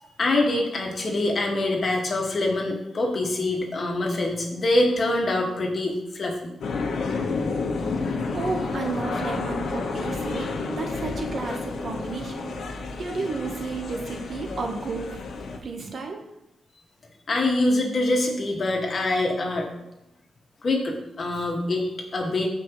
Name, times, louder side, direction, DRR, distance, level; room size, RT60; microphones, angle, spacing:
voice 1, 0.2-6.4 17.3-19.7 20.6-22.5, left 2 dB, 45° left, 0 dB, 2.1 m, -24 dB
sound 1, 6.6-15.6, left 4 dB, 75° left, 1.3 m, -30 dB
voice 2, 8.3-12.5 13.0-15.2 15.6-16.2, right 4 dB, 55° right, 3 dB, 1.4 m, -32 dB
14.5 x 5.4 x 3.2 m, 0.89 s
cardioid pair, 100°, 0 cm